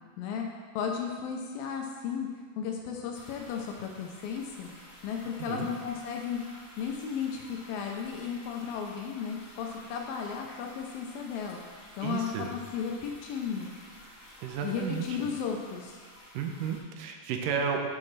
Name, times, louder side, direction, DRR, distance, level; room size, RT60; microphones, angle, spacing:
voice 1, 0.2-0.5 0.7-2.3 2.6-4.7 5.0-6.4 6.8-11.6 12.0-13.7 14.6-16.0, left 7 dB, 80° left, 1 dB, 2.5 m, -34 dB
sound 1, 3.1-16.8, left 1 dB, 35° left, 3.1 m, -51 dB
voice 2, 12.0-12.5 14.4-15.1 16.3-17.9, right 6 dB, 80° right, 3 dB, 2.2 m, -32 dB
10.5 x 7.6 x 3.3 m, 1.5 s
omnidirectional pair, 4.2 m